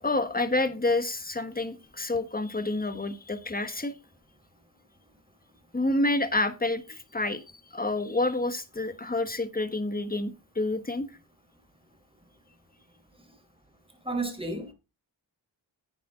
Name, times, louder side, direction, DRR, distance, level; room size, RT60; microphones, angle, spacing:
voice 1, 0.0-3.9 5.7-7.4 7.7-11.1, left 2 dB, 20° left, 1.4 m, -28 dB
voice 2, 14.0-14.7, right 2 dB, 10° right, 4.1 m, -31 dB
9.9 x 9.5 x 3.8 m
cardioid pair, 65°, 47 cm